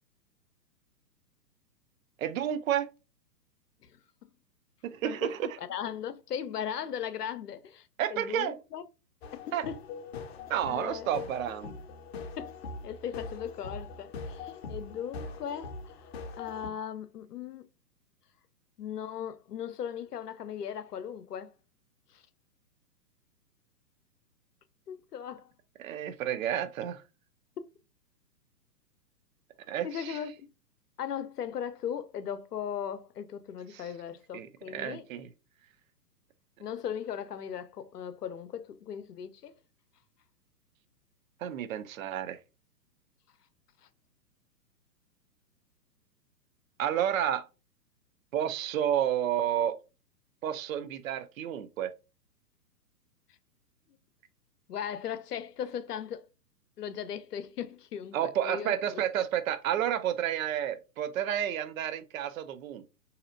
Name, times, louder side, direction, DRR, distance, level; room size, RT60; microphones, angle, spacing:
voice 1, 2.2-2.9 4.8-5.6 8.0-8.5 9.5-9.7 10.5-11.8 25.8-27.0 29.7-30.2 33.7-33.8 34.3-35.3 41.4-42.4 46.8-47.4 48.3-49.8 50.4-51.9 58.1-62.8, right 10 dB, 55° right, 0.6 m, -31 dB
voice 2, 5.6-8.8 9.5-9.8 10.7-11.1 12.4-12.5 12.8-17.7 18.8-21.5 22.1-22.2 24.9-25.5 27.6-27.7 29.8-30.5 31.0-35.0 36.6-39.5 43.8-43.9 54.7-56.2 56.8-59.0, left 8 dB, 70° left, 0.7 m, -38 dB
sound 1, 9.2-16.7, left 4 dB, 40° left, 0.7 m, -42 dB
4.1 x 2.8 x 2.5 m
figure-of-eight pair, 125°, 49 cm